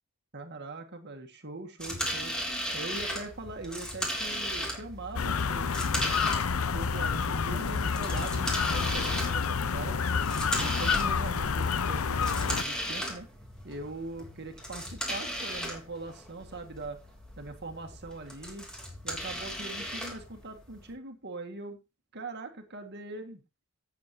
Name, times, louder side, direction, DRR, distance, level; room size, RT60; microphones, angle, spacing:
voice 1, 0.3-2.3 2.7-5.7 6.7-10.2 10.6-13.3 13.6-17.0 17.4-18.7 19.0-21.8 22.1-23.4, right 2 dB, 50° right, 5 dB, 1.9 m, -41 dB
sound 1, 1.8-20.9, equal, 5° left, 3.3 m, -37 dB
sound 2, 5.2-12.6, left 5 dB, 75° left, 0.7 m, -29 dB
17.0 x 7.5 x 2.8 m, 0.26 s
head